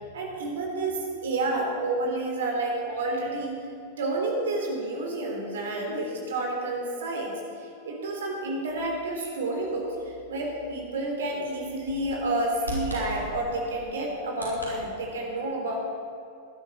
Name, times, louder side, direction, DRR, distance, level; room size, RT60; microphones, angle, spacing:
voice 1, 0.1-3.5 4.0-15.8, right 2 dB, 60° right, 1 dB, 3.7 m, -30 dB
Bird vocalization bird call bird song, 8.7-14.7, left 1 dB, 80° left, 4.6 m, -42 dB
19.0 x 11.5 x 5.7 m, 2.5 s
figure-of-eight pair, 90°, 0 cm